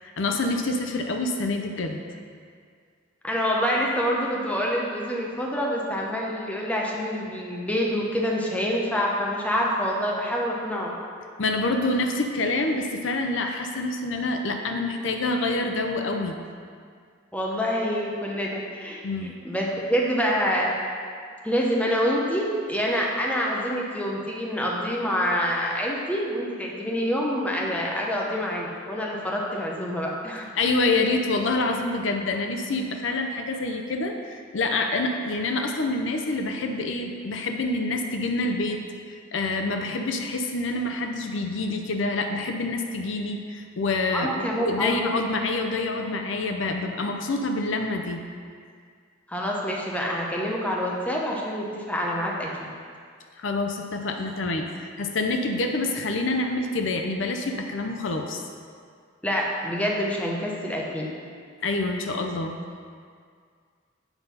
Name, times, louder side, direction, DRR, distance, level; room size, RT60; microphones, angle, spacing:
voice 1, 0.0-2.0 11.4-16.4 19.0-19.3 30.6-38.8 39.1-48.2 53.4-58.4 61.6-62.6, left 2 dB, 75° left, 4 dB, 0.6 m, -27 dB
voice 2, 3.2-10.9 17.3-20.7 21.4-30.4 44.1-45.0 49.3-52.5 59.2-61.1, equal, 5° left, -3 dB, 0.8 m, -26 dB
8.2 x 4.0 x 5.5 m, 2.1 s
head